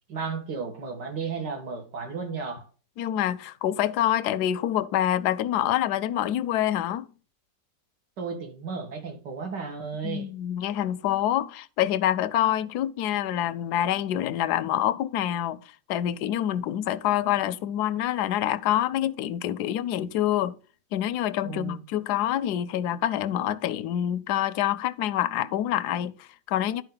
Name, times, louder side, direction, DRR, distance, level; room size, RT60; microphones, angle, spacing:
voice 1, 0.1-2.6 8.2-10.3 21.4-21.8, right 5 dB, 75° right, 2.2 m, -34 dB
voice 2, 3.0-7.1 10.0-20.6 20.9-26.8, left 11 dB, 75° left, 1.0 m, -26 dB
11.5 x 4.7 x 3.8 m
omnidirectional pair, 1.9 m